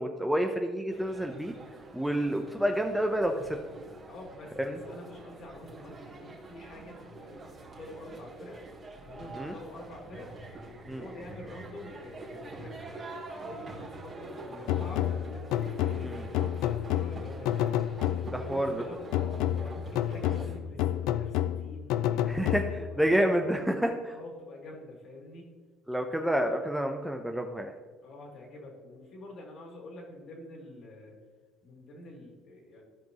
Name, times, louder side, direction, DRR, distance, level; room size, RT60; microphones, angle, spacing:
voice 1, 0.0-1.5 1.9-3.6 4.6-4.8 9.3-9.5 10.9-11.0 16.0-16.2 18.3-18.8 22.3-22.6 23.0-24.1 25.9-27.7, equal, 5° right, 4 dB, 0.7 m, -29 dB
sound 1, 0.9-20.6, right 2 dB, 30° right, 2.4 m, -45 dB
voice 2, 4.1-8.6 9.1-10.3 10.8-17.6 18.3-23.1 24.1-25.5 28.0-31.2 31.6-32.8, left 1 dB, 55° left, 0 dB, 2.7 m, -47 dB
sound 2, 14.7-18.6 19.1-23.0, left 11 dB, 75° left, 0.3 m, -30 dB
15.0 x 5.2 x 3.0 m, 1.3 s
supercardioid pair, 100°, 0 cm